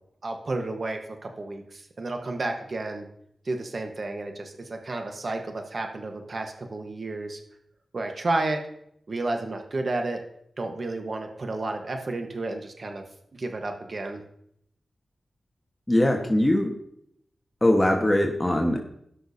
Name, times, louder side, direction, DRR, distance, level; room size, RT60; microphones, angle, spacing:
voice 1, 0.2-3.1 3.4-7.4 7.9-8.6 9.1-10.2 10.6-13.0 13.3-14.2, right 2 dB, 55° right, 4 dB, 1.2 m, -31 dB
voice 2, 15.9-16.7 17.6-19.0, left 1 dB, 20° left, 2 dB, 1.3 m, -22 dB
17.0 x 6.2 x 2.8 m, 0.72 s
cardioid pair, 55°, 0 cm